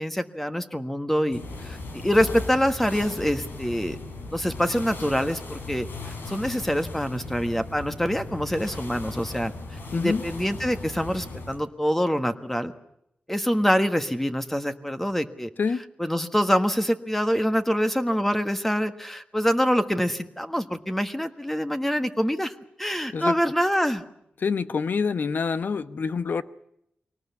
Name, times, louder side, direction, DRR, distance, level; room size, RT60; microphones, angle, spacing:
voice 1, 0.0-1.8 2.0-4.0 4.3-9.5 9.9-12.7 13.3-15.5 16.0-24.0, equal, 5° left, 8 dB, 1.5 m, -25 dB
sound 1, 1.3-11.6, left 2 dB, 85° left, 4.2 m, -37 dB
voice 2, 9.9-10.2 15.6-15.9 23.1-23.4 24.4-26.4, left 5 dB, 65° left, 13 dB, 0.9 m, -26 dB
23.0 x 18.5 x 8.3 m, 0.77 s
wide cardioid pair, 85°, 4 cm